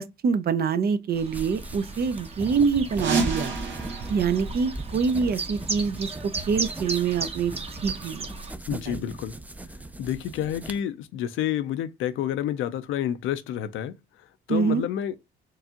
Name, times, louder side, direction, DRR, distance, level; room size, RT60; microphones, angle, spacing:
voice 1, 0.0-3.5 4.1-6.1 6.5-7.5 7.8-8.3 8.9-9.0 14.5-14.8, right 5 dB, 50° right, 0.6 m, -25 dB
Chirp tweet, 1.1-8.5, right 3 dB, 30° right, 0.9 m, -36 dB
sound 1, 1.3-10.8, right 2 dB, 10° right, 0.4 m, -39 dB
sound 2, 2.9-5.5, right 4 dB, 70° right, 1.3 m, -31 dB
voice 2, 8.7-9.3 10.0-14.0 14.5-15.2, left 10 dB, 85° left, 0.5 m, -29 dB
4.6 x 2.4 x 2.8 m
cardioid pair, 90°, 20 cm